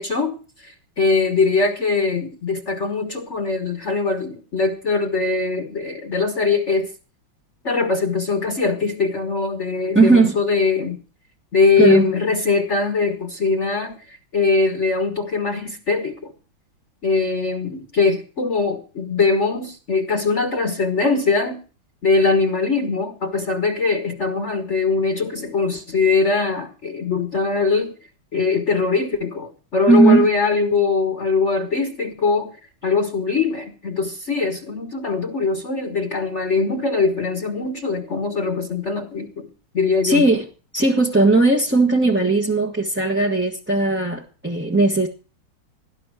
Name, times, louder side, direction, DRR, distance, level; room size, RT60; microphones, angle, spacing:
voice 1, 0.0-6.9 7.6-11.0 11.5-16.3 17.0-21.6 22.0-27.9 28.3-32.5 32.8-39.5 39.7-40.3, left 4 dB, 40° left, 6 dB, 1.4 m, -21 dB
voice 2, 9.9-10.3 11.8-12.1 29.9-30.3 40.0-40.5 40.7-45.1, right 3 dB, 5° right, -2 dB, 1.0 m, -17 dB
18.5 x 10.5 x 4.9 m, 0.37 s
omnidirectional pair, 2.2 m